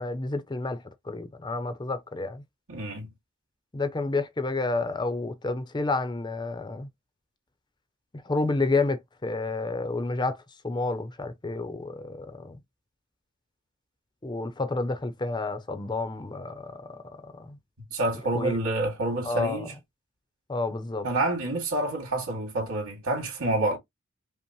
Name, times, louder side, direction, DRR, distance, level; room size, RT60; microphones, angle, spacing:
voice 1, 0.0-2.4 3.7-6.9 8.2-12.6 14.2-17.6 18.3-18.6 19.2-19.7 20.5-21.1, left 3 dB, 20° left, 0.6 m, -30 dB
voice 2, 2.7-3.1 17.9-19.7 21.0-23.8, right 2 dB, 85° right, 2.3 m, -28 dB
5.3 x 2.1 x 3.0 m
head